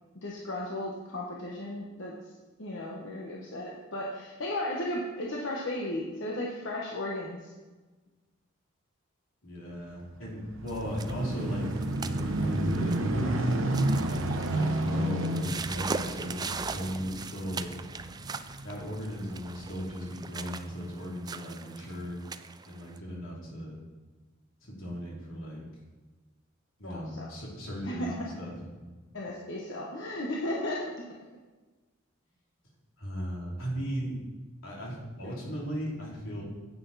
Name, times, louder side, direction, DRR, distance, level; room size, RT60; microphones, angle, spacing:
voice 1, 0.2-2.1 2.6-7.5 26.8-27.2 27.8-28.1 29.1-30.8 35.2-35.4, left 1 dB, 65° left, -3 dB, 1.2 m, -35 dB
voice 2, 9.4-11.7 12.3-13.5 14.5-17.7 18.6-22.2 22.6-23.8 24.6-25.6 26.8-28.6 33.0-34.2 34.6-36.4, equal, 85° left, -3 dB, 3.0 m, -37 dB
sound 1, 10.1-18.9 19.5-19.6, right 1 dB, 75° right, 1.0 m, -31 dB
sound 2, 10.7-23.0, right 5 dB, 20° right, 0.3 m, -40 dB
9.4 x 8.3 x 4.1 m, 1.3 s
head